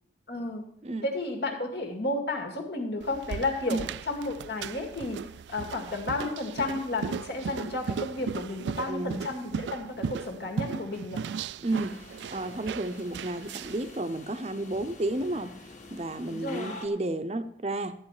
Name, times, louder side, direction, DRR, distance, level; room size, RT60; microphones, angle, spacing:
voice 1, 0.3-0.6 1.0-5.2 5.5-11.2 16.3-16.7, left 2 dB, 65° left, 1 dB, 2.2 m, -32 dB
sound 1, 3.0-13.9, right 6 dB, 75° right, 0.3 m, -37 dB
voice 2, 8.9-9.3 11.6-15.5 15.9-17.9, right 2 dB, 35° right, 10 dB, 0.7 m, -32 dB
sound 2, 11.6-16.9, left 2 dB, 40° left, 1.8 m, -47 dB
13.0 x 9.0 x 4.9 m, 0.73 s
head